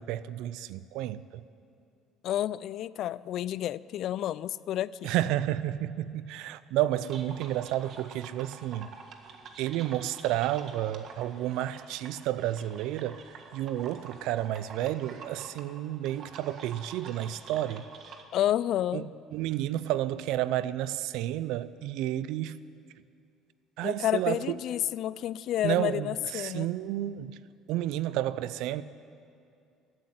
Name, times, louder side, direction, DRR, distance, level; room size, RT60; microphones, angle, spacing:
voice 1, 0.0-1.5 5.0-8.9 9.6-17.9 18.9-22.6 23.8-24.6 25.6-27.4 27.7-28.8, right 13 dB, 75° right, 0.5 m, -31 dB
voice 2, 2.2-5.1 18.3-19.1 23.8-26.7, left 12 dB, 60° left, 0.4 m, -30 dB
sound 1, 7.0-18.2, right 5 dB, 55° right, 1.6 m, -48 dB
15.0 x 9.4 x 9.7 m
supercardioid pair, 85°, 0 cm